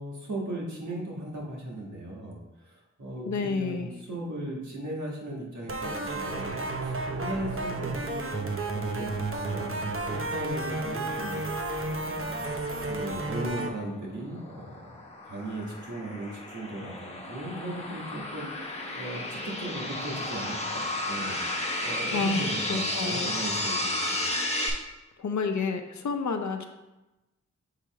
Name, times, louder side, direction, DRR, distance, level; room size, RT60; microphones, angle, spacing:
voice 1, 0.0-8.4 8.7-11.4 11.8-12.4 12.9-20.8 21.1-24.3, right 1 dB, 80° right, -3 dB, 1.5 m, -37 dB
voice 2, 3.2-3.9 22.1-22.4 22.7-23.3 25.2-26.7, left 4 dB, 75° left, 6 dB, 0.6 m, -29 dB
sound 1, 5.7-13.7, right 2 dB, 45° right, 0.8 m, -32 dB
sound 2, 13.9-24.7, left 1 dB, 20° left, 1.0 m, -33 dB
6.6 x 3.0 x 4.6 m, 1.0 s
wide cardioid pair, 70°, 29 cm